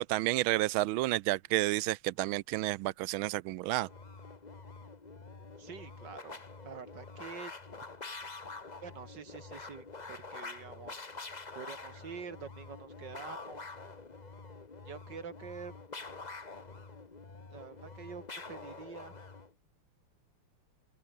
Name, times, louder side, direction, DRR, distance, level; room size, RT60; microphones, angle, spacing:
voice 1, 0.0-3.9, right 17 dB, 75° right, 1.4 m, -30 dB
sound 1, 3.8-19.5, left 3 dB, 20° left, 1.4 m, -47 dB
voice 2, 5.6-7.5 8.8-11.0 11.5-13.7 14.9-15.7 17.5-19.1, right 6 dB, 55° right, 2.7 m, -46 dB
open air
omnidirectional pair, 2.4 m